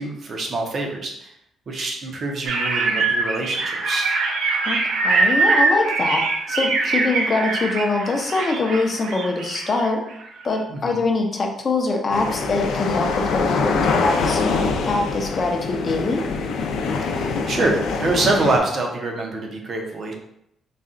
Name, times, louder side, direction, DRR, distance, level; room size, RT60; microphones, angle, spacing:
voice 1, 0.0-1.3 1.7-4.1 10.7-11.0 17.0-20.1, right 2 dB, 40° right, 1 dB, 0.7 m, -25 dB
sound 1, 2.5-10.6, right 3 dB, 80° right, 0.6 m, -22 dB
voice 2, 4.7-6.2 6.5-10.0 10.4-16.2, left 3 dB, 30° left, 2 dB, 0.5 m, -23 dB
sound 2, 12.1-18.6, left 4 dB, 85° left, 0.5 m, -24 dB
4.0 x 2.2 x 3.7 m, 0.76 s
cardioid pair, 165°, 0 cm